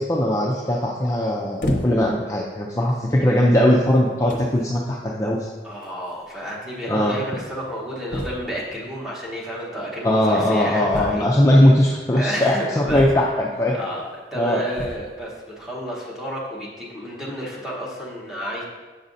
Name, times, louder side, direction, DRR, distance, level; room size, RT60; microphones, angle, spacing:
voice 1, 0.0-5.4 6.9-7.1 10.0-13.8 14.4-14.6, left 1 dB, 15° left, -3 dB, 0.4 m, -19 dB
sound 1, 1.6-2.2 3.0-3.1 3.9-4.0 4.3-4.6 5.8-5.9 6.1-6.2 6.5-6.6 8.1-8.6 10.9-11.6 12.9-13.5 14.7-15.2, left 1 dB, 45° left, 0.7 m, -29 dB
voice 2, 5.6-11.3 12.1-13.1 13.7-18.6, equal, ahead, -6 dB, 1.0 m, -31 dB
7.1 x 5.3 x 2.6 m, 1.3 s
head